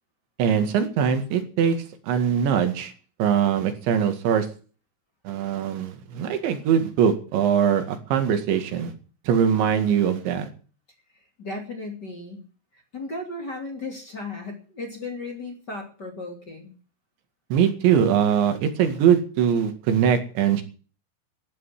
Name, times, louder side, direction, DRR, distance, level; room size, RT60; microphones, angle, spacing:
voice 1, 0.4-1.8 2.0-2.9 3.2-4.5 5.3-8.9 9.3-10.5 17.5-20.6, right 8 dB, 85° right, 7 dB, 4.5 m, -22 dB
voice 2, 11.4-12.4 12.7-16.7, left 2 dB, 30° left, 3 dB, 2.7 m, -35 dB
15.5 x 11.0 x 7.5 m, 0.39 s
omnidirectional pair, 5.1 m